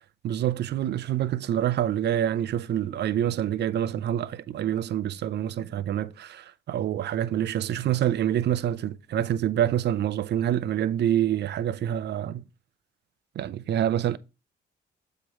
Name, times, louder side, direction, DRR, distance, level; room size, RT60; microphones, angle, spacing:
voice 1, 0.2-12.4 13.4-14.2, right 11 dB, 60° right, 0.5 m, -26 dB
7.4 x 3.1 x 4.8 m
cardioid pair, 90°, 20 cm